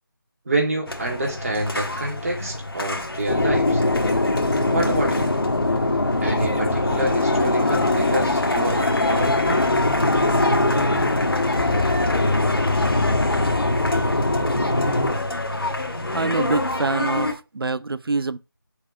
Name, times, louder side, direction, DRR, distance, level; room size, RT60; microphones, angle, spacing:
voice 1, 0.5-3.8 4.6-5.3 6.2-9.7, right 2 dB, 40° right, 2.3 m, -27 dB
sound 1, 0.9-17.3, left 2 dB, 85° left, 1.5 m, -27 dB
sound 2, 3.3-15.2, left 2 dB, 60° left, 1.8 m, -22 dB
voice 2, 16.1-18.4, right 3 dB, 85° right, 0.5 m, -25 dB
6.4 x 3.5 x 5.4 m
figure-of-eight pair, 165°, 12 cm